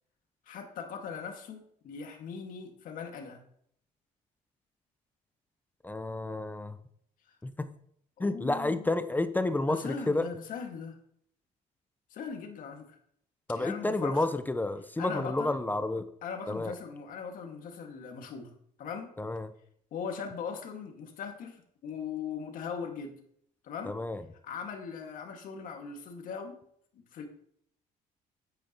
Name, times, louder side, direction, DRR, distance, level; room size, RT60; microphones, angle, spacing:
voice 1, 0.5-3.4 7.3-7.4 8.2-8.9 9.7-11.0 12.1-13.0 13.5-14.3 15.0-15.6 16.2-18.5 18.8-19.1 19.9-23.2 23.6-24.0 24.4-26.6 26.9-27.3, left 6 dB, 65° left, 3 dB, 1.9 m, -40 dB
voice 2, 5.8-6.8 7.4-7.7 8.2-10.2 13.5-16.1 16.5-16.7 19.2-19.5 23.9-24.2, left 2 dB, 10° left, 11 dB, 0.6 m, -30 dB
9.1 x 8.8 x 3.0 m, 0.66 s
cardioid pair, 95°, 15 cm